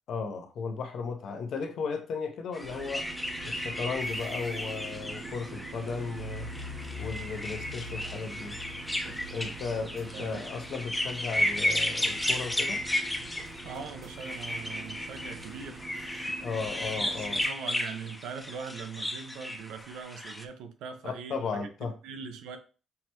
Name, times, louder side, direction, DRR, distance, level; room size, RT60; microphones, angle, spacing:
voice 1, 0.1-3.0 3.4-6.5 7.0-8.6 9.3-12.8 16.4-17.4 21.0-21.9, left 5 dB, 70° left, 0.7 m, -35 dB
sound 1, 2.5-20.4, left 1 dB, 10° left, 0.5 m, -34 dB
sound 2, 2.6-17.5, right 2 dB, 60° right, 1.1 m, -44 dB
voice 2, 10.1-10.4 13.6-16.3 17.0-22.6, right 6 dB, 90° right, 0.6 m, -42 dB
5.6 x 2.2 x 2.9 m
cardioid pair, 90°, 0 cm